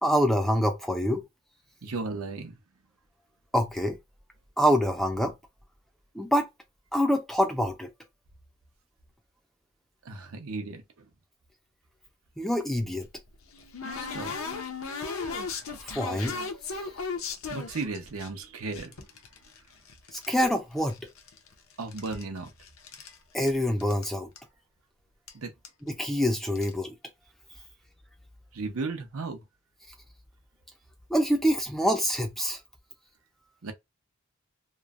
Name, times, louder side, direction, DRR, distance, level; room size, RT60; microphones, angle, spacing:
voice 1, 0.0-1.2 3.5-4.0 4.6-5.3 6.1-6.5 6.9-7.9 12.4-13.1 15.8-16.4 16.7-16.8 20.1-21.0 23.3-24.3 25.9-26.9 31.1-32.6, equal, ahead, 0.3 m, -26 dB
voice 2, 1.8-2.6 10.0-11.1 13.9-14.3 17.5-19.0 21.8-22.5 25.3-25.5 28.5-29.4 33.6-33.7, right 3 dB, 80° right, 0.7 m, -35 dB
sound 1, 12.8-18.3 18.7-20.5 20.8-21.5 21.8-23.2 23.5-23.6 23.8-24.1 24.4-24.5 25.3-25.4 25.6-25.9 26.4-26.7, left 4 dB, 75° left, 0.7 m, -37 dB
3.0 x 2.1 x 2.4 m
head